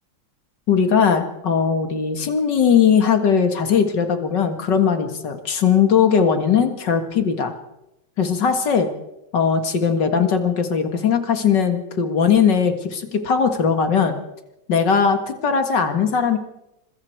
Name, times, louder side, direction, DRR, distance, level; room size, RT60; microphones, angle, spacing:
voice 1, 0.7-7.5 8.2-8.9 9.3-14.2 14.7-16.4, left 6 dB, 80° left, 7 dB, 2.5 m, -19 dB
26.0 x 22.0 x 4.6 m, 0.89 s
omnidirectional pair, 1.9 m